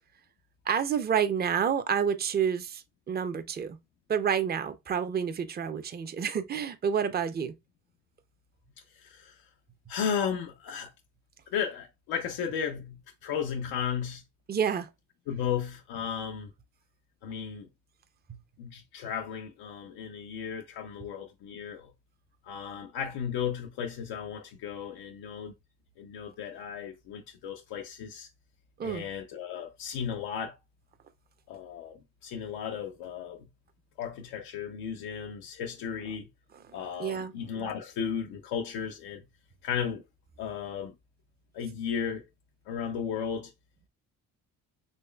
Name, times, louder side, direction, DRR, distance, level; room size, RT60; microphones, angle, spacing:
voice 1, 0.7-3.8 4.1-7.5 14.5-14.9 18.3-18.4 28.8-29.1 36.7-37.3, right 7 dB, 25° right, 0.5 m, -29 dB
voice 2, 9.0-9.4 9.9-10.9 11.5-14.2 15.3-16.5 17.2-17.7 18.6-21.9 22.5-25.5 26.0-28.3 28.8-30.6 31.5-33.5 34.0-36.3 36.7-39.2 39.6-40.0 40.4-40.9 41.5-42.3 42.7-43.5, left 7 dB, 85° left, 0.6 m, -35 dB
4.1 x 3.1 x 2.2 m
supercardioid pair, 75°, 36 cm